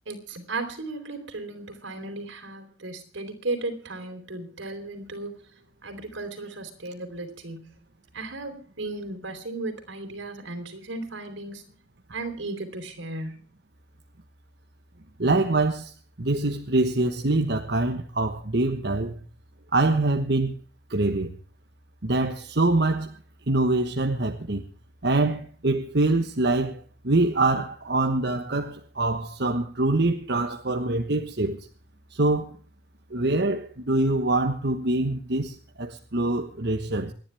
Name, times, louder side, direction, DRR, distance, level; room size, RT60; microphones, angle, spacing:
voice 1, 0.1-5.5 5.8-7.7 8.1-11.7 12.1-13.4, right 2 dB, 75° right, 3.9 m, -35 dB
voice 2, 15.2-15.9 16.2-19.2 19.7-20.6 20.9-21.3 22.0-23.1 23.5-24.6 25.0-26.8 27.0-31.6 32.1-32.5 33.1-37.1, right 2 dB, 55° right, 1.3 m, -24 dB
28.0 x 10.5 x 3.5 m
head